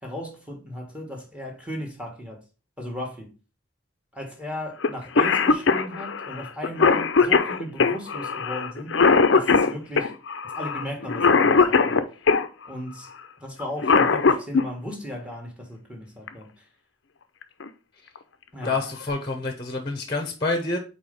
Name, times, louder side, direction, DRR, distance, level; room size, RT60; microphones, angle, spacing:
voice 1, 0.0-2.4 2.8-3.3 4.1-10.1 10.5-12.1 12.7-13.1 13.4-16.5 18.5-18.8, equal, 5° right, 1.5 m, -36 dB
Cough, 4.8-4.9 5.2-12.5 13.6-14.7 16.3-16.4 17.4-17.7 18.2-18.3 18.6-19.1, left 4 dB, 60° left, 0.6 m, -20 dB
voice 2, 18.6-20.8, left 3 dB, 25° left, 0.9 m, -27 dB
4.7 x 4.2 x 5.1 m
head